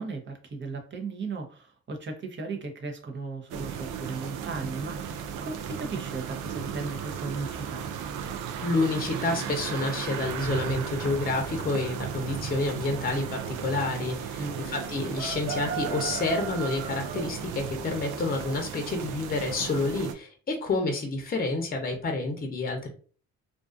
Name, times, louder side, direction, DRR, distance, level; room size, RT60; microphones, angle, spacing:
voice 1, 0.0-7.9 14.4-14.8, right 4 dB, 40° right, 3 dB, 0.7 m, -36 dB
sound 1, 3.5-20.1, right 7 dB, 85° right, 0.5 m, -35 dB
voice 2, 8.6-22.9, left 2 dB, 30° left, 3 dB, 0.7 m, -29 dB
2.4 x 2.4 x 2.4 m, 0.40 s
cardioid pair, 90°, 30 cm